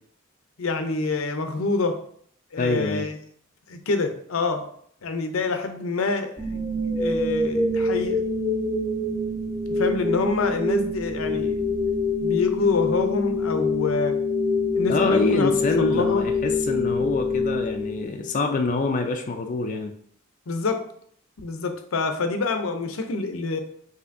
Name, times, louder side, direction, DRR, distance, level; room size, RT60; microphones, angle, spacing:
voice 1, 0.6-2.0 2.5-3.2 3.7-4.7 5.0-6.4 7.0-8.2 9.7-11.6 12.2-14.2 14.7-16.3 20.5-20.9 21.4-23.6, left 3 dB, 85° left, 7 dB, 0.6 m, -26 dB
voice 2, 2.6-3.1 14.9-19.9, left 3 dB, 40° left, 4 dB, 0.3 m, -26 dB
sound 1, 6.4-18.4, left 3 dB, ahead, 0.6 m, -25 dB
5.7 x 2.8 x 2.6 m, 0.63 s
head